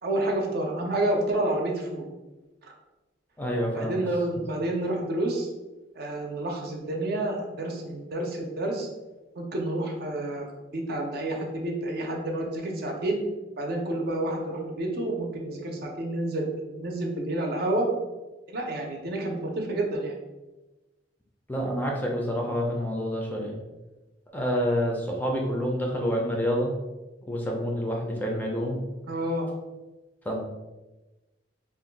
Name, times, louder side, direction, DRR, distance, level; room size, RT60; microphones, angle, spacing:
voice 1, 0.0-2.1 2.6-2.7 3.7-5.5 6.0-8.9 9.4-10.5 10.7-13.2 13.6-17.9 18.5-20.2 29.1-29.5, right 1 dB, 60° right, 1 dB, 0.6 m, -29 dB
voice 2, 3.4-4.0 21.5-23.5 24.3-26.7 27.2-28.8 30.3-30.4, equal, 10° left, -1 dB, 0.4 m, -28 dB
2.5 x 2.2 x 3.8 m, 1.1 s
head